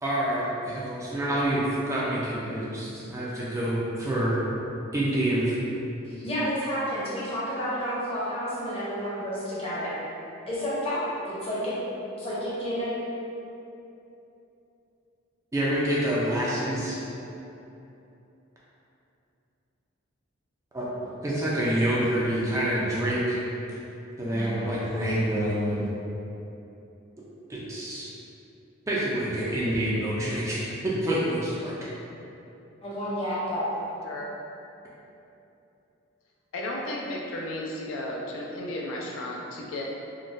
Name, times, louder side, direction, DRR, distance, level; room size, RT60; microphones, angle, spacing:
voice 1, 0.0-4.4 4.9-5.6 15.5-17.0 20.7-23.4 24.2-25.9 27.5-28.1 28.9-31.7, right 1 dB, 15° right, -7 dB, 0.3 m, -27 dB
voice 2, 6.0-9.9 10.5-11.8 12.2-12.9 24.3-24.5 32.8-33.7, equal, 25° left, -9 dB, 0.7 m, -30 dB
voice 3, 36.5-39.8, left 1 dB, 70° left, -2 dB, 0.4 m, -34 dB
3.8 x 2.1 x 2.4 m, 2.9 s
head